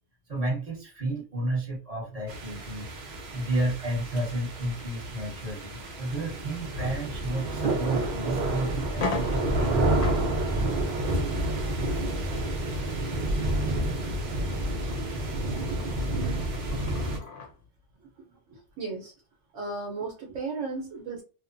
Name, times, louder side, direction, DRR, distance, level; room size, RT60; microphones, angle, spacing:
voice 1, 0.3-2.9 3.3-10.1, right 1 dB, 30° right, -2 dB, 0.9 m, -31 dB
sound 1, 2.3-17.2, right 1 dB, 50° right, 0.6 m, -29 dB
sound 2, 7.9-8.1 8.5-8.6 8.9-17.6, left 3 dB, 55° left, 0.7 m, -40 dB
voice 2, 15.5-15.8 18.5-19.1 19.5-21.2, right 3 dB, 75° right, 0 dB, 1.0 m, -35 dB
2.9 x 2.1 x 2.5 m, 0.33 s
omnidirectional pair, 1.3 m